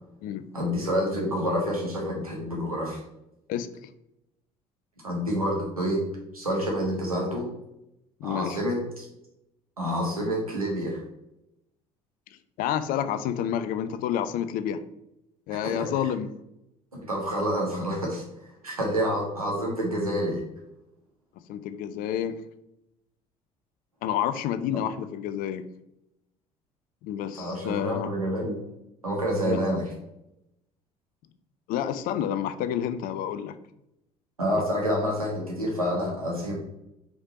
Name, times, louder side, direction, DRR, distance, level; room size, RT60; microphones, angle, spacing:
voice 1, 0.5-3.0 5.0-6.0 6.3-7.5 8.2-9.0 9.8-11.0 15.6-15.9 17.1-18.2 18.6-20.4 27.4-28.6 29.0-29.8 34.4-36.5, equal, 85° right, -2 dB, 1.6 m, -28 dB
voice 2, 8.2-8.6 12.6-14.8 15.5-16.3 21.5-22.4 24.0-25.6 27.0-28.1 29.4-29.6 31.7-33.5 34.6-34.7, left 10 dB, 50° left, 12 dB, 0.6 m, -29 dB
5.1 x 5.0 x 4.1 m, 0.85 s
figure-of-eight pair, 55°, 18 cm